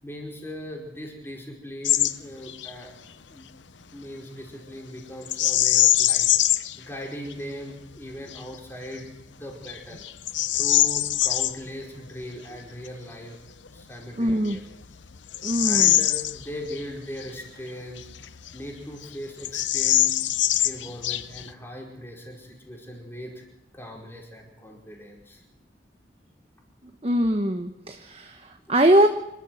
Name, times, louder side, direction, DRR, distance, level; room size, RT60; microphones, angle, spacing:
voice 1, 0.0-2.9 3.3-3.5 3.9-6.3 6.8-10.0 10.5-13.4 13.7-14.6 15.6-18.1 18.5-20.2 20.6-23.4 23.7-25.4, equal, 10° left, 0 dB, 4.9 m, -39 dB
Bird vocalization bird call bird song, 1.8-2.1 2.5-2.7 5.3-6.8 7.3-7.4 8.0-8.4 9.0-9.1 9.6-11.5 13.7-13.8 14.4-16.8 17.2-17.3 18.0-18.8 19.0-19.1 19.4-21.5, left 13 dB, 85° left, 0.8 m, -23 dB
voice 2, 14.2-14.6 15.4-16.0 27.0-29.1, right 1 dB, 30° right, 6 dB, 1.1 m, -22 dB
26.5 x 13.0 x 7.9 m, 0.87 s
head